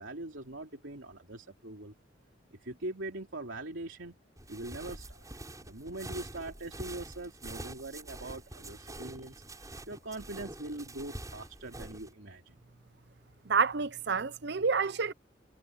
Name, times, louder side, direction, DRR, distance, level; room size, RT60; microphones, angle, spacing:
voice 1, 0.0-1.9 2.5-4.2 4.5-5.3 5.6-12.6, right 2 dB, 85° right, 3.0 m, -42 dB
sound 1, 4.4-12.1, right 1 dB, 20° right, 7.8 m, -45 dB
voice 2, 13.5-15.1, right 5 dB, 60° right, 0.7 m, -28 dB
head